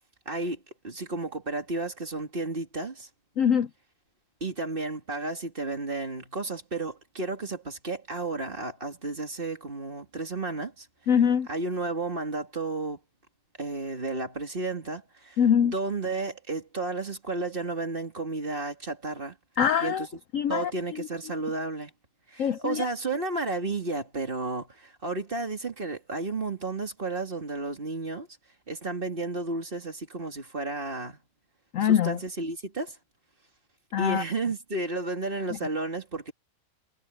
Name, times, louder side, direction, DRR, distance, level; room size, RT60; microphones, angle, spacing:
voice 1, 0.3-3.1 4.4-10.9 11.5-13.0 13.6-19.4 19.8-20.1 20.5-21.9 22.3-28.3 28.7-31.2 31.8-33.0 34.0-36.3, right 3 dB, 30° right, 2.6 m, -32 dB
voice 2, 3.4-3.7 11.1-11.5 15.4-15.7 19.6-20.1 20.3-20.7 22.4-22.9 31.7-32.2 33.9-34.2 35.5-35.6, left 8 dB, 65° left, 0.9 m, -23 dB
omnidirectional pair, 1.8 m